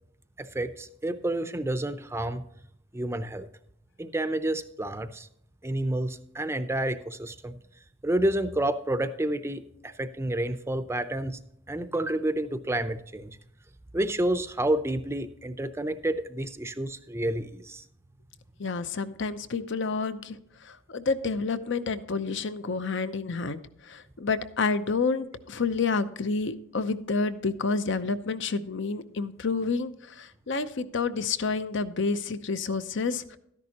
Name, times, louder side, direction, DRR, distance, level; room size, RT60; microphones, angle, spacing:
voice 1, 0.4-2.4 2.9-3.5 4.0-5.3 5.6-7.5 8.0-11.4 11.7-13.3 13.9-17.8, right 1 dB, 15° right, 11 dB, 0.5 m, -29 dB
voice 2, 18.6-20.4 20.6-33.4, left 4 dB, 60° left, 12 dB, 0.7 m, -29 dB
13.0 x 10.5 x 2.9 m, 0.75 s
head